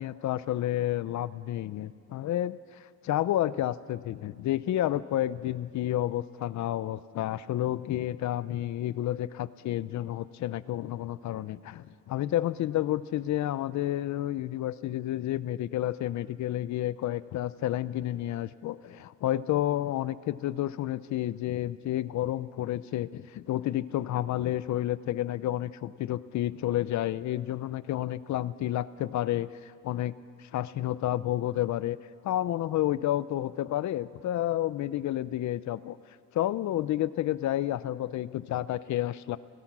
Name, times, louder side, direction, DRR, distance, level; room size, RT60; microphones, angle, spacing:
voice 1, 0.0-2.6 3.0-30.1 30.4-32.0 32.2-36.0 36.3-39.4, left 13 dB, 65° left, 16 dB, 0.7 m, -30 dB
29.5 x 17.5 x 6.1 m, 2.2 s
cardioid pair, 155°, 31 cm